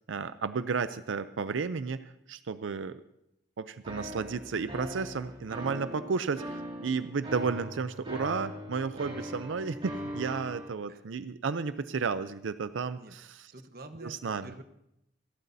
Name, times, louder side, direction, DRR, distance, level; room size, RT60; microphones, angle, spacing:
voice 1, 0.1-3.0 3.6-13.5 14.0-14.5, right 5 dB, 85° right, 13 dB, 0.5 m, -33 dB
sound 1, 3.8-10.7, equal, 30° right, 2.7 m, -41 dB
voice 2, 13.5-14.6, right 2 dB, 50° right, 8 dB, 1.1 m, -48 dB
27.0 x 12.5 x 2.7 m, 0.83 s
head